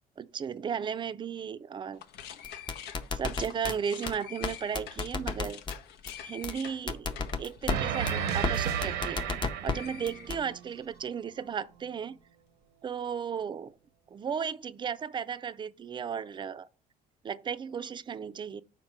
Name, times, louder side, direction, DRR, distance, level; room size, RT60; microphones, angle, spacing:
voice 1, 0.2-2.0 3.1-5.6 6.2-12.2 12.8-13.7 14.1-16.7 17.2-18.6, right 7 dB, 30° right, 0.4 m, -35 dB
sound 1, 1.9-9.4 9.7-10.8, left 9 dB, 80° left, 0.7 m, -46 dB
sound 2, 2.4-3.7 4.1-4.2 4.4-4.5 4.7-5.7 6.1-6.2 6.4-6.5 6.9-7.8 8.1-8.2 8.4-8.5 8.8-9.7 10.1-10.4, left 4 dB, 25° left, 0.6 m, -31 dB
sound 3, 7.7-10.6, right 8 dB, 85° right, 0.7 m, -32 dB
5.3 x 4.3 x 5.9 m
cardioid pair, 110°, 17 cm